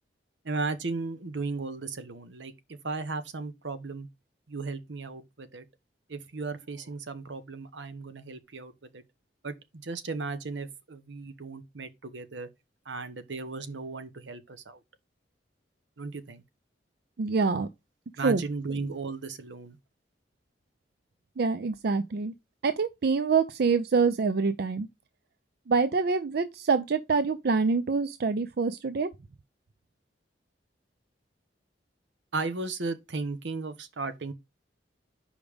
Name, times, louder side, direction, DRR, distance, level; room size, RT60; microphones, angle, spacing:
voice 1, 0.4-4.1 4.5-5.6 6.1-9.0 9.4-12.5 12.9-14.8 16.0-16.4 18.2-19.8 32.3-34.3, right 3 dB, 80° right, 0.9 m, -36 dB
voice 2, 17.2-17.7 18.2-18.4 21.4-22.3 22.6-24.9 25.7-29.1, right 4 dB, 60° right, 0.5 m, -26 dB
5.1 x 5.1 x 5.1 m
head